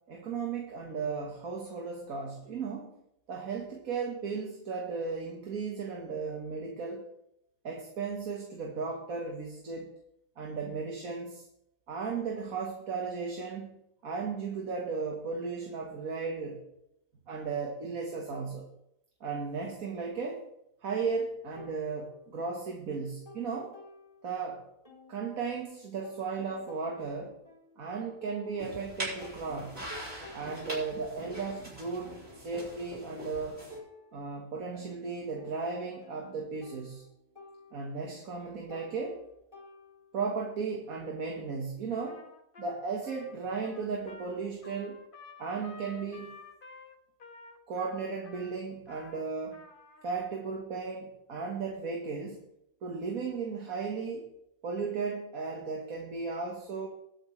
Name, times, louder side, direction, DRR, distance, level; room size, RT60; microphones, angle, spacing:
voice 1, 0.0-3.0 3.3-7.0 7.6-9.9 10.4-11.5 11.9-13.8 14.0-16.6 17.3-18.7 19.2-20.4 20.8-23.8 24.2-24.7 25.1-27.4 27.8-29.7 30.3-33.6 34.1-37.0 37.7-39.2 40.1-42.2 42.6-45.0 45.4-46.4 47.7-49.7 50.0-52.5 52.8-54.3 54.6-56.9, right 5 dB, 75° right, 1 dB, 2.0 m, -35 dB
sound 1, 21.6-22.7 23.0-24.5 24.9-28.9 29.2-40.3, left 2 dB, 20° left, 3.4 m, -53 dB
sound 2, 28.6-33.8, right 1 dB, 45° right, 6.5 m, -42 dB
Trumpet, 42.0-50.3, left 4 dB, 40° left, 1.3 m, -52 dB
21.5 x 8.6 x 3.3 m, 0.82 s
omnidirectional pair, 1.5 m